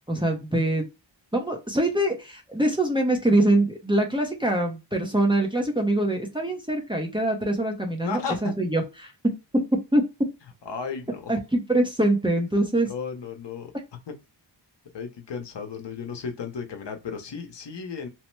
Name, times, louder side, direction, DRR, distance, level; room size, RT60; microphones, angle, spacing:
voice 1, 0.1-0.8 1.3-9.6 9.9-10.0 11.3-12.9, right 1 dB, 10° right, 0.6 m, -24 dB
voice 2, 8.0-8.5 10.7-11.3 12.9-13.7 14.1-14.2 14.9-18.1, left 5 dB, 65° left, 0.8 m, -34 dB
3.0 x 2.1 x 3.1 m
wide cardioid pair, 80°, 46 cm